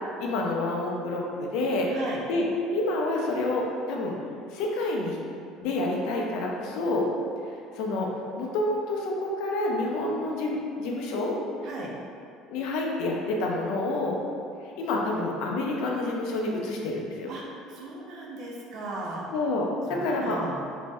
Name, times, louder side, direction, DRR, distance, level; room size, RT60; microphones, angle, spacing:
voice 1, 0.2-2.0 2.3-4.2 4.5-5.2 5.6-7.1 7.7-8.1 8.4-11.4 12.5-14.2 14.8-17.3 19.3-20.4, left 2 dB, 65° left, -1 dB, 0.4 m, -28 dB
voice 2, 1.9-2.2 11.6-11.9 17.3-19.3 19.9-20.6, right 2 dB, 45° right, -3 dB, 0.5 m, -37 dB
2.5 x 2.1 x 3.3 m, 2.5 s
cardioid pair, 165°, 0 cm